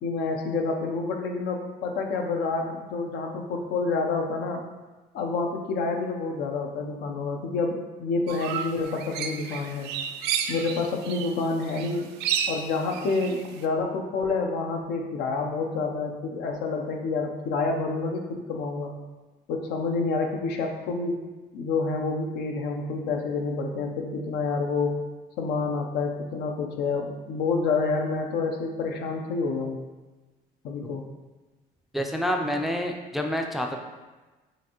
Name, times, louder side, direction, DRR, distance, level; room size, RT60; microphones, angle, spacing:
voice 1, 0.0-4.6 5.1-9.9 10.5-12.1 12.5-18.9 19.5-21.2 21.5-25.0 25.4-29.8 30.6-31.0, left 4 dB, 80° left, 3 dB, 0.6 m, -28 dB
sound 1, 8.3-11.4 11.6-13.6, right 8 dB, 80° right, 0.4 m, -31 dB
voice 2, 31.9-33.8, equal, ahead, 3 dB, 0.3 m, -28 dB
5.7 x 2.6 x 2.9 m, 1.2 s
cardioid pair, 110°, 17 cm